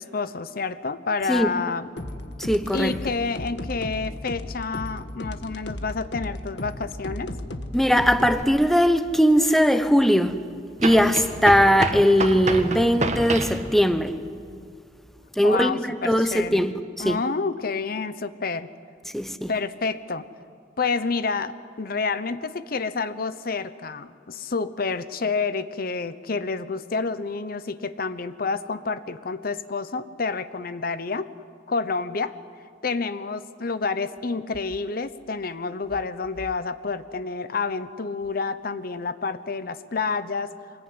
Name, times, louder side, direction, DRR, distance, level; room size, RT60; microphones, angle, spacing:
voice 1, 0.0-1.9 2.7-7.3 15.4-16.7 17.0-18.7 19.5-20.3 20.8-31.3 31.7-32.3 32.8-40.5, left 4 dB, 55° left, 0.9 m, -29 dB
sound 1, 2.0-8.4, left 1 dB, 80° left, 1.6 m, -35 dB
voice 2, 2.4-3.0 7.7-10.4 10.8-14.2 15.4-16.7 17.0-17.2 19.1-19.5, equal, ahead, 1.0 m, -20 dB
sound 2, 8.4-8.5 10.8-13.6, right 2 dB, 40° right, 1.8 m, -28 dB
25.5 x 21.0 x 9.8 m
head